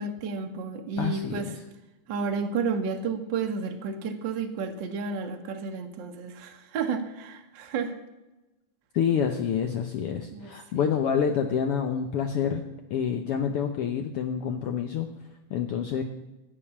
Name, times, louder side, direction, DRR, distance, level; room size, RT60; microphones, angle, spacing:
voice 1, 0.0-1.5 2.1-7.9 10.3-10.9, right 5 dB, 55° right, 4 dB, 1.4 m, -31 dB
voice 2, 1.0-1.6 8.9-15.1 15.5-16.0, left 7 dB, 85° left, 5 dB, 1.2 m, -28 dB
16.0 x 5.4 x 8.5 m, 1.0 s
omnidirectional pair, 3.6 m